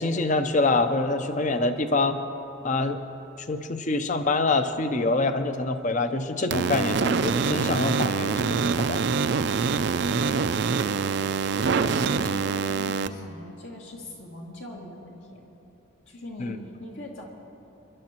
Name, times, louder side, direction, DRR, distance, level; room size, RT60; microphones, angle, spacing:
voice 1, 0.0-2.2 2.6-3.0 3.5-9.0 16.4-16.6, left 3 dB, 40° left, 9 dB, 0.6 m, -25 dB
sound 1, 6.5-13.1, right 5 dB, 55° right, 0.4 m, -25 dB
voice 2, 11.8-15.5 16.1-17.2, left 1 dB, 70° left, -2 dB, 2.1 m, -41 dB
27.5 x 11.5 x 2.9 m, 3.0 s
head